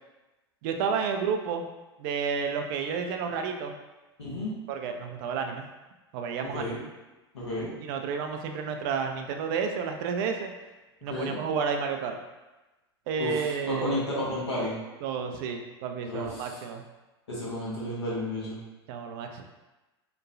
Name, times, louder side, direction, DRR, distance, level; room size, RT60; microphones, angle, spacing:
voice 1, 0.6-1.6 2.0-3.7 4.7-5.7 6.1-6.6 7.8-10.5 11.0-12.2 13.1-14.0 15.0-16.8 18.9-19.4, right 6 dB, 55° right, 4 dB, 0.4 m, -31 dB
voice 2, 4.2-4.5 6.5-6.8 7.3-7.7 11.1-11.4 13.2-14.8 16.0-16.6 17.3-18.6, left 1 dB, 85° left, -7 dB, 1.0 m, -32 dB
2.9 x 2.2 x 2.5 m, 1.1 s
hypercardioid pair, 85°, 14 cm